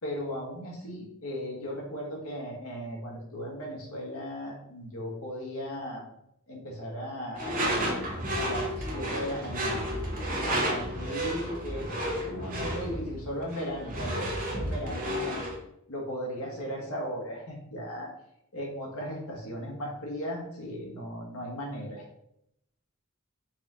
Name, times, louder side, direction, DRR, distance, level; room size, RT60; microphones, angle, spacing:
voice 1, 0.0-6.1 6.5-8.0 8.3-9.9 10.4-15.4 15.9-18.1 18.5-22.0, equal, 85° left, -1 dB, 1.3 m, -37 dB
Door / Screech, 7.4-15.6, equal, 40° right, 0.9 m, -32 dB
4.1 x 2.7 x 3.7 m, 0.78 s
head